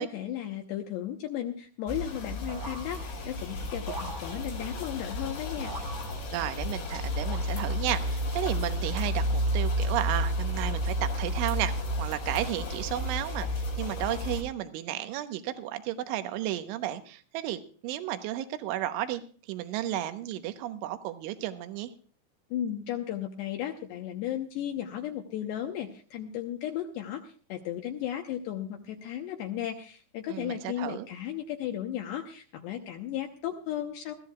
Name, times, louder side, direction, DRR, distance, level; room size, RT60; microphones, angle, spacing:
voice 1, 0.0-5.7 22.5-34.1, left 11 dB, 75° left, 3 dB, 2.8 m, -35 dB
sound 1, 1.9-14.4, equal, 90° left, 7.2 m, -31 dB
sound 2, 2.5-3.4 3.9-4.8 5.6-6.7 7.2-7.9, right 3 dB, 55° right, 1.1 m, -43 dB
voice 2, 6.3-11.7 12.0-13.5 13.8-19.2 19.5-21.9 30.3-31.1, right 13 dB, 80° right, 9 dB, 3.4 m, -33 dB
21.5 x 14.5 x 2.4 m, 0.43 s
omnidirectional pair, 5.6 m